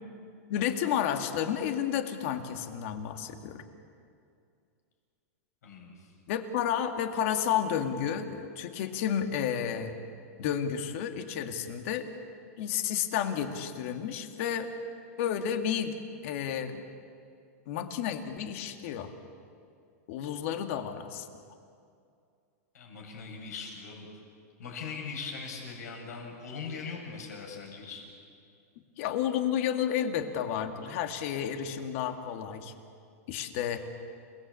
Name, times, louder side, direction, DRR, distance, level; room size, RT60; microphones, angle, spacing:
voice 1, 0.5-3.6 6.3-9.9 10.4-12.1 12.6-14.7 15.2-15.9 16.2-16.8 17.7-19.1 20.1-21.3 29.0-32.7 33.3-33.8, left 9 dB, 50° left, 6 dB, 2.1 m, -31 dB
voice 2, 5.6-6.1 22.7-24.1 24.6-28.0, left 5 dB, 85° left, 1 dB, 7.1 m, -40 dB
29.0 x 18.5 x 8.5 m, 2.4 s
supercardioid pair, 155°, 9 cm